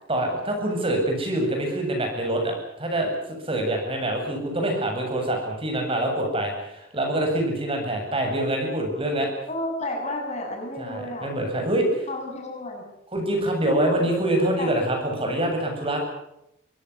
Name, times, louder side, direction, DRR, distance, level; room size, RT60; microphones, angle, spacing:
voice 1, 0.1-3.1 3.5-9.3 10.8-12.1 13.1-16.0, right 1 dB, 30° right, 2 dB, 7.9 m, -25 dB
voice 2, 9.5-11.3 12.1-12.8 13.7-14.1 14.6-14.7, left 1 dB, 35° left, 2 dB, 7.5 m, -31 dB
24.5 x 17.5 x 10.0 m, 0.79 s
head